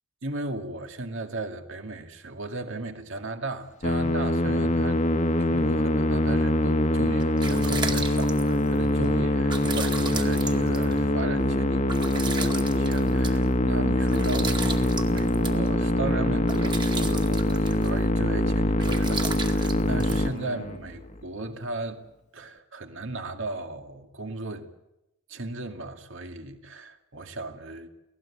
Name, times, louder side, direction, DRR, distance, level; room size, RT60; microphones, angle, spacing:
voice 1, 0.2-5.0 5.3-22.0 22.3-24.7 25.3-27.9, right 2 dB, 65° right, 2.3 m, -36 dB
Musical instrument, 3.8-21.0, left 1 dB, 35° left, 1.5 m, -24 dB
sound 1, 7.0-20.9, right 4 dB, 20° right, 2.2 m, -37 dB
29.5 x 18.0 x 8.6 m
head